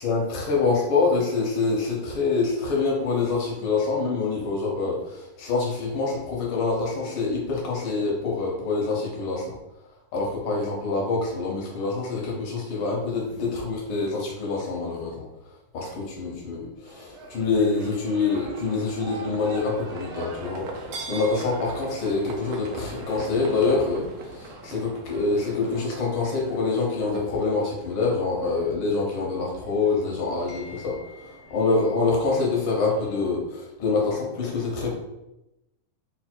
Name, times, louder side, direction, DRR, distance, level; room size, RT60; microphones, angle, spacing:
voice 1, 0.0-9.5 10.1-15.3 15.7-20.7 21.1-34.9, left 4 dB, 80° left, -3 dB, 1.1 m, -26 dB
Livestock farm animals working animals, 16.8-33.3, right 2 dB, 80° right, 1.4 m, -41 dB
4.9 x 2.2 x 4.4 m, 0.92 s
omnidirectional pair, 3.6 m